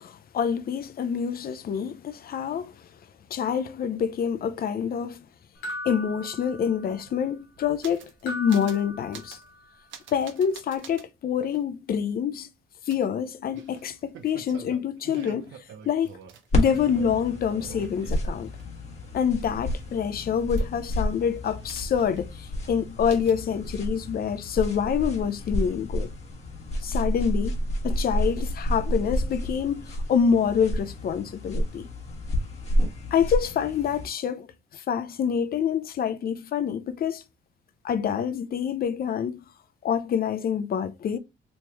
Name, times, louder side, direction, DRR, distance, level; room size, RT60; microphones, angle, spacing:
voice 1, 0.0-2.7 3.3-5.2 5.8-9.4 10.1-12.5 12.9-16.1 16.5-18.5 19.1-26.1 26.8-27.6 27.8-31.9 33.1-34.5 34.7-37.2 37.8-39.4 39.8-41.2, left 7 dB, 50° left, 0.5 m, -26 dB
sound 1, 5.6-7.1 8.3-9.7, left 1 dB, 85° left, 1.1 m, -38 dB
sound 2, 6.5-6.6 6.8-8.2 8.5-8.8 9.1-9.5 9.9-11.1 11.5-11.6 12.9-18.6 19.0-21.0 21.4-22.3 22.6-22.7 23.1-23.4, right 8 dB, 75° right, 0.7 m, -46 dB
sound 3, 16.5-34.1, equal, 35° left, 1.3 m, -30 dB
3.2 x 2.9 x 3.3 m
cardioid pair, 90°, 20 cm